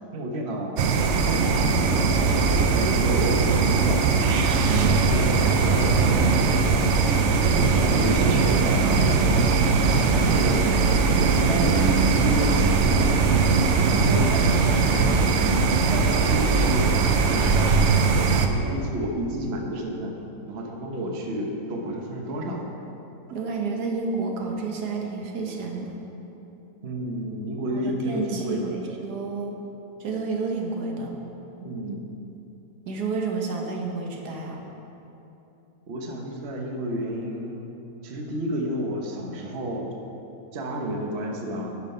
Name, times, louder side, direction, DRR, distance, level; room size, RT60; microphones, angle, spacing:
voice 1, 0.1-0.8 1.2-4.1 4.6-7.0 7.4-9.6 10.1-10.6 11.2-15.4 15.9-16.9 17.3-20.1 20.5-22.7 26.8-28.7 31.6-32.1 35.9-37.7 38.0-39.9 40.5-41.7, equal, 45° right, 1 dB, 1.1 m, -31 dB
sound 1, 0.8-18.5, right 4 dB, 65° right, 0.7 m, -20 dB
voice 2, 4.7-5.8 10.3-11.4 23.3-26.0 27.7-29.5 30.0-31.1 32.9-34.6, right 4 dB, 80° right, 1 dB, 1.6 m, -30 dB
10.5 x 5.6 x 5.5 m, 3.0 s
omnidirectional pair, 1.7 m